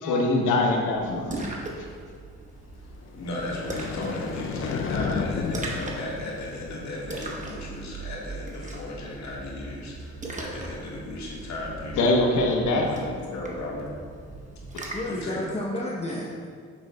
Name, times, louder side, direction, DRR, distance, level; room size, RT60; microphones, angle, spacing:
voice 1, 0.0-1.3 1.8-1.9 12.0-12.9, left 2 dB, 85° left, 1 dB, 1.1 m, -23 dB
Splash splatter, 0.9-15.2, right 2 dB, 25° right, 1.0 m, -39 dB
sound 1, 3.0-7.3, left 5 dB, 45° left, 0.5 m, -33 dB
voice 2, 3.1-12.1 12.8-13.9 15.1-15.4, left 2 dB, 65° left, -4 dB, 1.7 m, -35 dB
voice 3, 14.9-16.5, left 1 dB, 20° left, -5 dB, 0.9 m, -31 dB
7.8 x 6.7 x 2.3 m, 2.1 s
cardioid pair, 90°, 30 cm